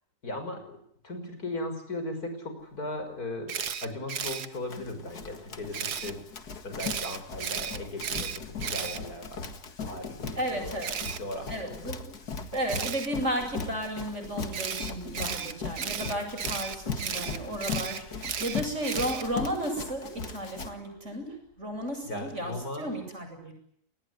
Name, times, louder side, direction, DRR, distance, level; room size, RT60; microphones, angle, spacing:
voice 1, 0.2-0.8 1.0-6.2 6.6-9.5 9.8-11.9 22.0-23.0, left 1 dB, 70° left, 7 dB, 6.3 m, -37 dB
Camera, 3.5-4.5 5.7-6.1 6.8-9.6 10.8-11.2 12.7-13.1 14.5-19.5, right 7 dB, 85° right, 1.9 m, -34 dB
Run, 4.5-20.7, left 4 dB, 85° left, 2.5 m, -39 dB
voice 2, 10.4-10.9 11.5-12.1 12.5-23.5, right 1 dB, 45° right, 3 dB, 8.6 m, -34 dB
28.0 x 20.0 x 9.7 m, 0.71 s
omnidirectional pair, 1.6 m